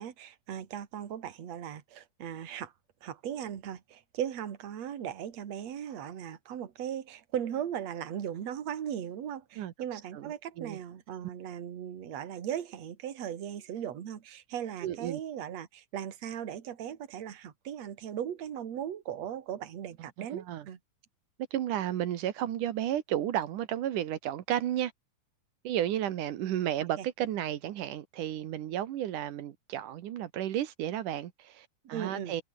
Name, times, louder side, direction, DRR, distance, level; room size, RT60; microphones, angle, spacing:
voice 1, 0.0-2.7 3.0-20.8 26.8-27.1 31.9-32.3, right 9 dB, 50° right, 3.1 m, -38 dB
voice 2, 10.1-10.8 14.8-15.2 20.2-20.7 21.5-24.9 25.6-32.4, right 11 dB, 70° right, 2.6 m, -33 dB
omnidirectional pair, 4.2 m